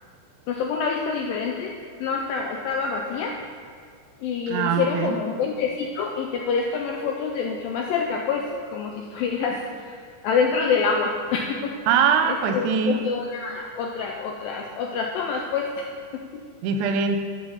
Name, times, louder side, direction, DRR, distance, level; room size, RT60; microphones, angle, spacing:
voice 1, 0.5-1.7 2.0-3.4 4.2-11.8 12.3-16.5, left 5 dB, 90° left, 1 dB, 2.0 m, -27 dB
voice 2, 4.5-5.2 11.9-13.0 16.6-17.2, right 6 dB, 90° right, 6 dB, 2.7 m, -22 dB
13.0 x 6.1 x 4.0 m, 2.2 s
omnidirectional pair, 4.7 m